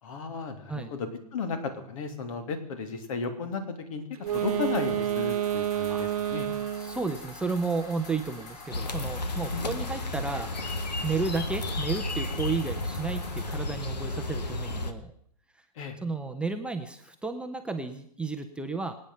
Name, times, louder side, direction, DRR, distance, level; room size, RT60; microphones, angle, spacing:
voice 1, 0.0-4.0 4.3-6.5 9.5-9.7 15.8-16.0, left 4 dB, 55° left, 8 dB, 2.9 m, -34 dB
sound 1, 4.2-13.6, left 2 dB, 40° left, 5.6 m, -46 dB
Wind instrument woodwind instrument, 4.2-7.1, right 11 dB, 60° right, 0.9 m, -29 dB
voice 2, 6.7-10.6 11.0-15.1 16.0-19.0, right 4 dB, 5° right, 5 dB, 0.8 m, -32 dB
sound 2, 8.7-14.9, left 2 dB, 85° left, 1.8 m, -32 dB
25.0 x 9.0 x 5.7 m, 0.66 s
hypercardioid pair, 125°, 21 cm